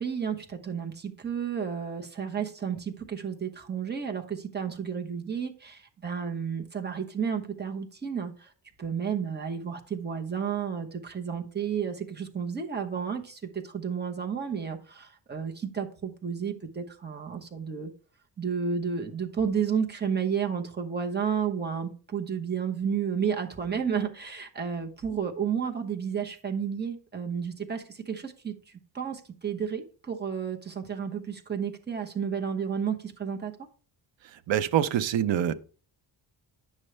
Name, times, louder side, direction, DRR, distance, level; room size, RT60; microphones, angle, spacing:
voice 1, 0.0-8.5 8.8-17.9 18.4-28.5 28.9-33.5, right 7 dB, 20° right, 1.0 m, -32 dB
voice 2, 34.5-35.5, right 10 dB, 75° right, 0.7 m, -25 dB
9.9 x 6.4 x 3.3 m
wide cardioid pair, 150°, 46 cm